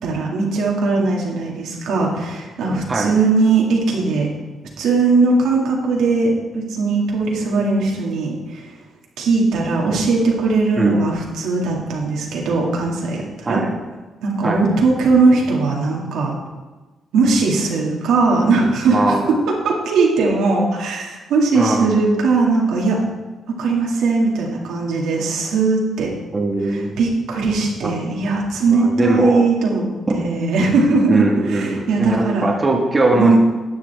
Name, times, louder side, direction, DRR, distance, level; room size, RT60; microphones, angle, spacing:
voice 1, 0.0-4.3 4.8-8.7 9.2-13.6 14.2-16.3 17.1-19.1 19.6-23.0 23.6-26.1 26.7-32.5 33.2-33.4, right 3 dB, 85° right, -2 dB, 2.2 m, -19 dB
voice 2, 13.4-13.8 14.4-14.6 18.9-19.3 21.5-22.0 26.3-26.9 27.8-27.9 28.7-29.4 31.1-33.4, right 2 dB, 25° right, -1 dB, 1.6 m, -20 dB
12.0 x 9.0 x 3.5 m, 1.2 s
cardioid pair, 125°, 0 cm